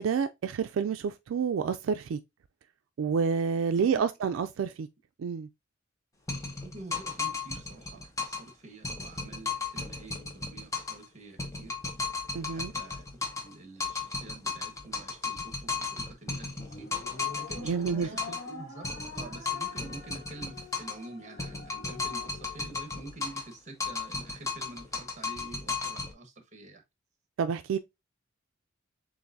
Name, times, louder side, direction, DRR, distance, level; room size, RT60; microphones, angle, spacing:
voice 1, 0.0-2.2 3.0-4.9 5.2-5.5 12.3-12.7 17.6-18.1 27.4-27.8, right 6 dB, 85° right, 0.3 m, -29 dB
sound 1, 6.3-8.5 8.8-11.1 11.4-13.5 13.8-18.5 18.8-21.1 21.4-23.5 23.8-26.1, left 4 dB, 15° left, 0.8 m, -35 dB
voice 2, 6.6-11.8 12.4-26.8, right 2 dB, 35° right, 1.4 m, -47 dB
sound 2, 16.6-23.1, left 3 dB, 90° left, 1.3 m, -47 dB
7.0 x 2.5 x 2.6 m
head